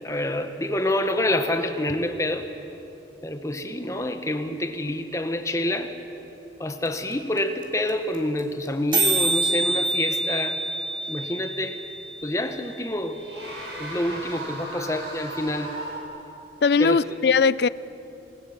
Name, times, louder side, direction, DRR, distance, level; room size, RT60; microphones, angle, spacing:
voice 1, 0.0-2.5 3.2-5.9 6.6-10.6 11.1-11.8 12.2-13.2 13.8-15.8 16.8-17.0, left 1 dB, 15° left, 7 dB, 1.1 m, -27 dB
sound 1, 6.9-7.0 7.1-7.2 7.4-7.6 7.9-8.0 8.1-8.4 8.7-8.8 8.9-12.9, right 2 dB, 25° right, 3.2 m, -26 dB
sound 2, 11.0-11.1 12.5-12.6 13.1-16.0, right 1 dB, 80° right, 6.5 m, -36 dB
voice 2, 16.6-17.7, left 5 dB, 65° left, 19 dB, 0.4 m, -19 dB
26.5 x 20.0 x 7.2 m, 3.0 s
head